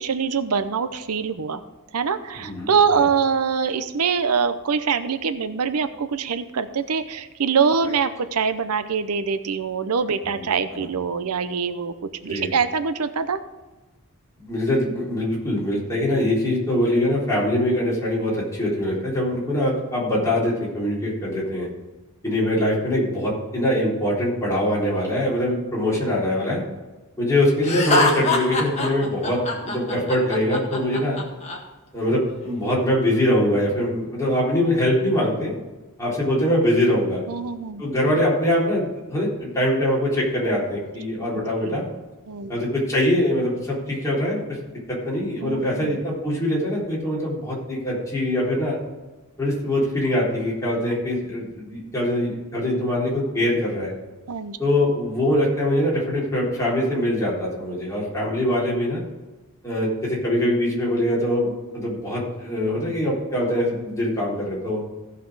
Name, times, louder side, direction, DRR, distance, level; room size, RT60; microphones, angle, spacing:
voice 1, 0.0-1.6 1.9-11.9 12.2-13.4 37.3-37.8 41.6-41.8 42.3-42.6 45.4-46.0 54.3-54.6, right 6 dB, 85° right, 11 dB, 0.7 m, -24 dB
voice 2, 2.4-3.1 7.8-7.9 10.4-10.9 12.3-12.5 14.4-21.7 22.2-26.6 27.2-31.2 31.9-35.5 36.0-37.2 37.8-41.8 42.5-44.6 44.9-48.8 49.4-53.9 54.6-59.0 59.6-64.8, left 1 dB, 15° left, -6 dB, 3.8 m, -23 dB
Laughter, 27.6-31.6, left 2 dB, 30° left, 1.6 m, -23 dB
15.5 x 5.9 x 4.8 m, 1.2 s
head